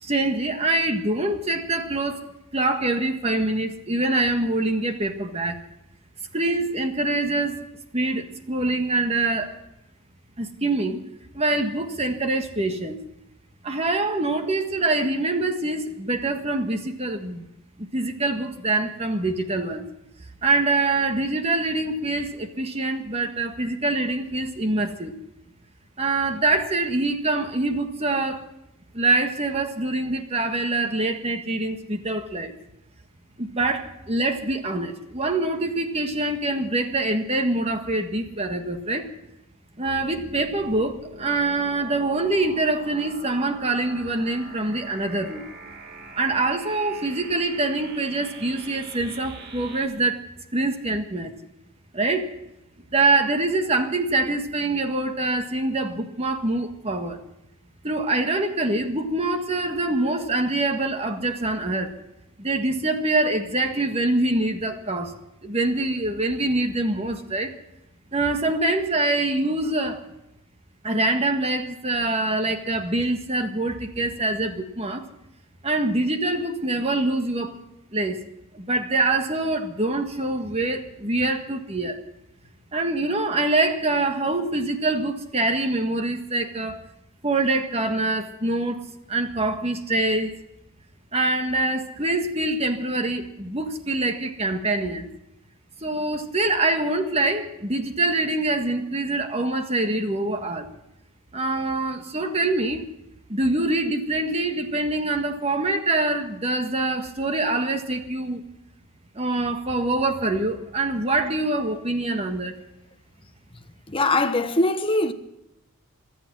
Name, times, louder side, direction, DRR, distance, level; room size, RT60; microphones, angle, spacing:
voice 1, 0.0-2.2 2.5-5.6 6.3-7.7 7.9-9.6 10.4-11.0 11.3-13.0 13.6-17.5 17.8-19.9 20.4-25.1 26.0-28.4 28.9-32.5 33.4-39.1 39.8-45.4 46.1-50.2 50.5-51.3 51.9-52.3 52.9-57.2 57.8-61.9 62.4-65.1 65.4-67.5 68.1-70.0 70.8-75.1 75.6-77.6 77.9-78.2 78.5-82.0 82.7-86.8 87.2-90.3 91.1-95.1 95.8-100.7 101.3-102.8 103.3-108.4 109.1-112.5, right 2 dB, 30° right, 1.6 m, -25 dB
sound 1, 39.9-49.9, right 2 dB, 45° right, 2.4 m, -43 dB
voice 2, 113.9-115.1, left 2 dB, 25° left, 0.9 m, -21 dB
25.0 x 8.8 x 6.2 m
head